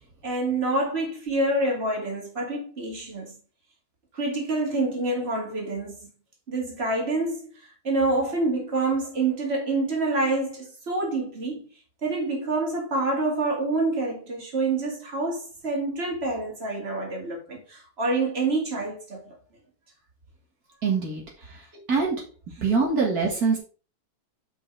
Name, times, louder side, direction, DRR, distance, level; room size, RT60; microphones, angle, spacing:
voice 1, 0.2-3.3 4.2-6.0 6.5-7.4 7.8-11.7 12.0-19.2, right 2 dB, 40° right, 2.6 m, -27 dB
voice 2, 20.8-21.2 21.9-22.2 22.6-23.6, right 4 dB, 75° right, 2.3 m, -23 dB
5.6 x 5.4 x 5.0 m
omnidirectional pair, 1.6 m